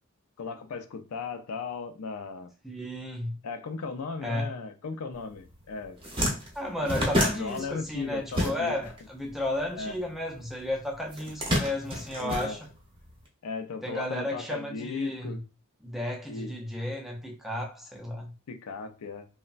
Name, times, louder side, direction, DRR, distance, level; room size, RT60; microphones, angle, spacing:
voice 1, 0.4-2.5 3.4-6.0 7.0-8.7 9.8-10.0 12.2-12.6 13.4-15.4 16.3-16.5 18.5-19.3, left 4 dB, 80° left, 0.4 m, -37 dB
voice 2, 2.6-3.4 4.2-4.5 6.5-12.7 13.8-15.4 15.8-18.3, left 1 dB, ahead, 0.4 m, -33 dB
sound 1, 5.4-5.6 5.8-9.0 9.2-10.4 11.1-13.1, equal, 20° right, 0.7 m, -29 dB
3.1 x 2.1 x 2.4 m
head